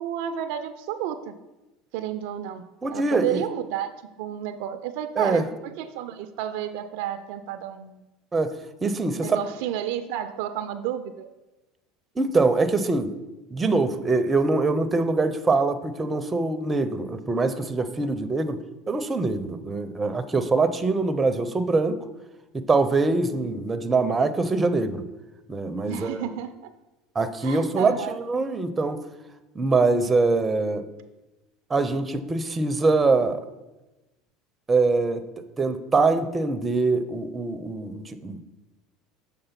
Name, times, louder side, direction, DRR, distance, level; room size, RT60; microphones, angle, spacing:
voice 1, 0.0-1.3 1.9-2.6 2.9-3.9 4.2-8.0 9.2-11.3 23.3-23.5 25.9-26.7 27.4-28.2, right 10 dB, 70° right, 11 dB, 0.4 m, -31 dB
voice 2, 2.8-3.4 5.2-5.4 8.3-8.5 8.8-9.4 12.2-13.2 13.5-18.6 18.9-22.0 22.5-25.0 25.5-26.2 27.1-27.9 28.3-29.0 29.6-30.8 31.7-33.4 34.7-35.2 35.6-38.4, right 3 dB, 20° right, 11 dB, 0.6 m, -23 dB
6.7 x 3.7 x 5.7 m, 1.0 s
hypercardioid pair, 80°, 0 cm